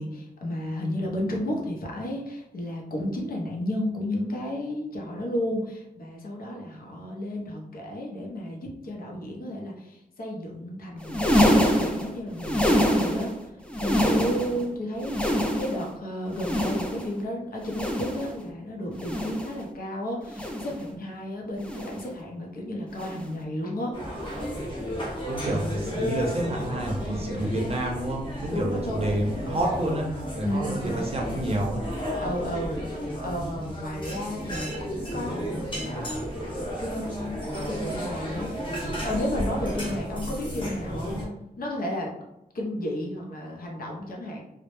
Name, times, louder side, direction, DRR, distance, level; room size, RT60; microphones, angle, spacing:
voice 1, 0.0-13.3 13.8-23.9 28.5-29.1 30.4-31.1 32.2-36.3 36.8-38.8 39.0-41.2 41.6-42.1 42.5-44.4, equal, 65° left, -1 dB, 0.6 m, -33 dB
sound 1, 11.0-13.4 13.7-14.6 15.0-15.9 16.3-17.2 17.6-18.4 18.9-19.6 20.3-20.8 21.6-22.1 22.9-23.4 24.3-24.6 25.6-25.8 26.9-27.0, equal, 5° left, 0.4 m, -26 dB
sound 2, 23.9-41.3, equal, 30° left, 0.8 m, -33 dB
voice 2, 25.3-31.8, right 1 dB, 40° right, 0 dB, 0.6 m, -29 dB
2.1 x 2.0 x 2.9 m, 0.87 s
wide cardioid pair, 110°, 16 cm